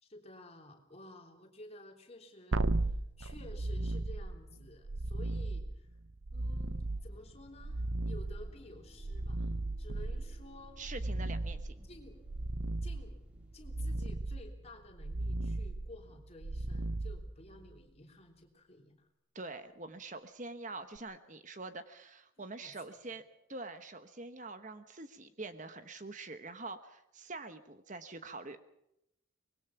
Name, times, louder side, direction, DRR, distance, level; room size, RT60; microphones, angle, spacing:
voice 1, 0.0-5.9 6.3-9.5 9.8-10.8 11.8-12.2 12.8-13.2 13.5-19.1 22.4-22.7, left 1 dB, 30° left, 3 dB, 3.3 m, -53 dB
sound 1, 2.5-17.8 21.0-21.1, right 2 dB, 75° right, 0.8 m, -36 dB
sound 2, 6.6-14.1, equal, 5° right, 3.6 m, -58 dB
voice 2, 10.8-11.9 19.3-23.2 23.5-28.6, right 3 dB, 35° right, 9 dB, 1.1 m, -45 dB
24.5 x 21.0 x 5.9 m, 0.82 s
head